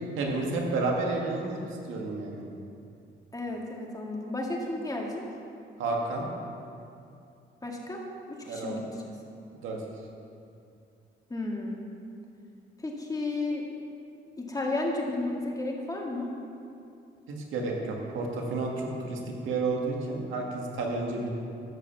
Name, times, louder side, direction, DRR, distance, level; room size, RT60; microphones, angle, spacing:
voice 1, 0.2-1.6 1.9-2.4 5.8-6.3 8.5-8.8 9.6-9.8 17.4-21.3, right 3 dB, 85° right, 0 dB, 1.9 m, -31 dB
voice 2, 3.3-5.2 7.6-8.0 8.3-9.2 11.3-11.8 12.8-13.6 14.4-16.3, left 2 dB, 20° left, -1 dB, 2.1 m, -33 dB
12.5 x 5.6 x 7.3 m, 2.5 s
cardioid pair, 90°, 20 cm